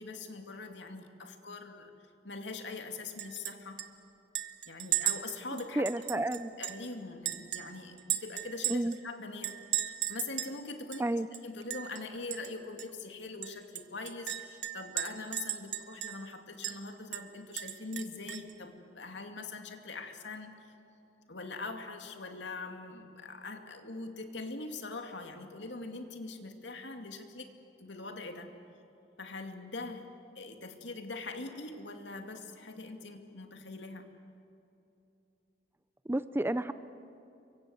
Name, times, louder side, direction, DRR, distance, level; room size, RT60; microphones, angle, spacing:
voice 1, 0.0-1.9 2.2-3.8 4.7-5.9 6.1-6.2 6.6-11.1 11.4-20.8 21.3-27.5 27.8-28.5 29.2-30.1 30.3-34.1, left 3 dB, 80° left, 5 dB, 2.4 m, -42 dB
Chink clink, 3.2-3.5 3.8-3.9 4.4-6.9 7.3-9.0 9.4-10.6 10.9-11.0 11.3-12.0 12.3-12.5 12.8-12.9 13.4-16.3 16.6-16.8 17.1-18.5, right 12 dB, 80° right, 1.3 m, -36 dB
voice 2, 5.8-6.5 8.7-9.0 11.0-11.3 36.1-36.7, right 1 dB, 15° right, 13 dB, 0.5 m, -30 dB
29.0 x 24.0 x 7.8 m, 2.8 s
head